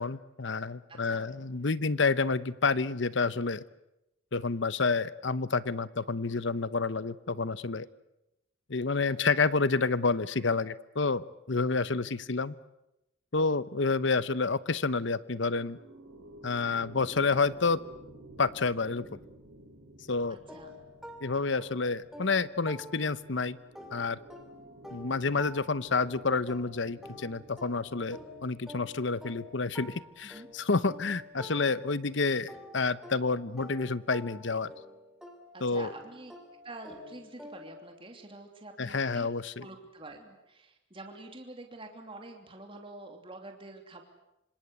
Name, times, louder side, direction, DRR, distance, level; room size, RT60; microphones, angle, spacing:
voice 1, 0.0-3.6 4.3-7.9 8.7-12.5 13.3-15.8 16.4-17.8 18.4-19.1 20.1-20.4 21.2-23.6 23.9-24.2 24.9-34.7 35.6-35.9 38.8-39.7, left 4 dB, 65° left, 16 dB, 0.9 m, -29 dB
voice 2, 0.9-1.3 9.1-9.4 20.3-20.8 30.2-30.5 35.5-36.3 36.6-39.3 39.6-44.0, right 2 dB, 25° right, 3 dB, 3.0 m, -47 dB
sound 1, 14.6-31.7, right 1 dB, 90° right, 4.8 m, -53 dB
sound 2, 20.5-23.3 23.7-32.1 32.5-37.9, left 1 dB, ahead, 3.3 m, -49 dB
26.5 x 26.0 x 8.0 m, 0.90 s
head